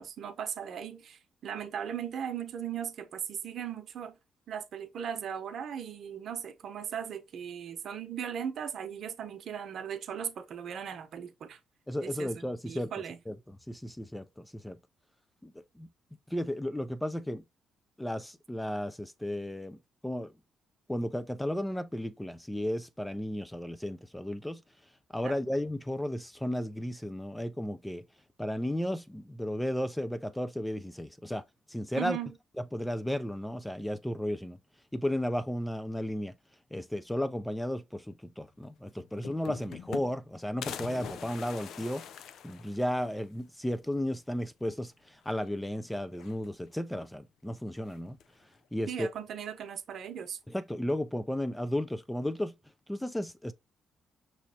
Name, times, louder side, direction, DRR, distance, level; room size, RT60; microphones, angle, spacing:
voice 1, 0.0-4.2 4.5-11.6 12.0-13.2 25.2-25.4 32.0-32.3 48.9-50.4, right 8 dB, 65° right, 0.8 m, -38 dB
voice 2, 11.9-12.9 13.3-14.8 15.4-15.9 16.3-17.4 18.0-20.3 20.9-24.6 25.1-28.0 28.4-31.4 31.7-32.2 32.7-34.6 34.9-36.3 36.7-42.1 42.4-48.2 48.7-49.1 50.5-52.5 52.9-53.5, left 1 dB, 5° left, 0.5 m, -34 dB
sound 1, 38.6-38.7 39.0-40.3 40.6-43.2 43.6-43.7 44.0-44.1 45.2-45.7 46.1-46.8 47.9-48.4, left 8 dB, 75° left, 0.5 m, -44 dB
5.7 x 3.1 x 2.8 m
cardioid pair, 90°, 0 cm